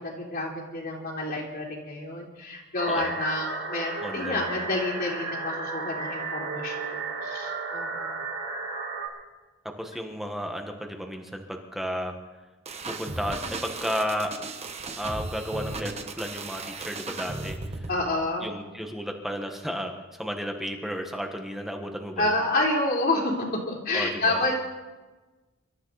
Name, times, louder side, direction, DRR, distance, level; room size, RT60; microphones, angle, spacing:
voice 1, 0.0-7.0 7.2-8.2 17.9-18.5 22.2-23.4 23.7-24.5, left 2 dB, 45° left, -1 dB, 3.5 m, -29 dB
sound 1, 2.8-9.1, right 3 dB, 70° right, 2.9 m, -33 dB
voice 2, 4.0-4.7 9.8-12.1 12.9-14.3 15.0-17.9 18.4-22.4 23.9-24.5, equal, ahead, 3 dB, 1.4 m, -33 dB
sound 2, 12.7-18.0, right 3 dB, 30° right, 1.3 m, -36 dB
25.0 x 13.0 x 4.1 m, 1.2 s
head